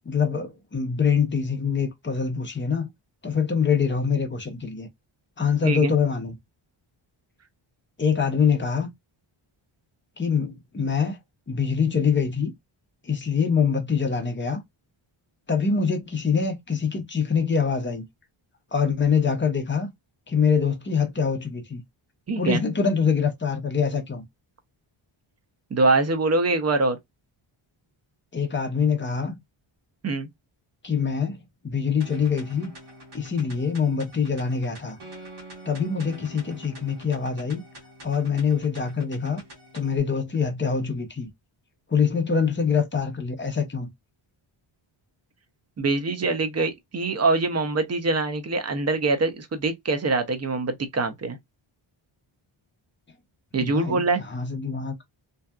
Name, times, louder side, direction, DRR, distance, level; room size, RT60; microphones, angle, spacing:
voice 1, 0.1-2.9 3.2-4.9 5.4-6.4 8.0-8.9 10.2-11.2 11.5-12.5 13.0-14.6 15.5-18.0 18.7-19.9 20.3-21.8 22.4-24.2 28.3-29.4 30.8-31.4 31.6-32.7 33.1-35.0 35.7-37.6 38.0-39.4 39.7-41.3 41.9-43.9 53.6-54.9, left 6 dB, 25° left, 0.6 m, -24 dB
voice 2, 22.3-22.6 25.7-27.0 30.0-30.3 45.8-51.4 53.5-54.2, right 3 dB, 35° right, 0.5 m, -24 dB
sound 1, 32.0-40.0, right 1 dB, 55° right, 1.2 m, -46 dB
2.7 x 2.3 x 2.2 m
wide cardioid pair, 135°, 50 cm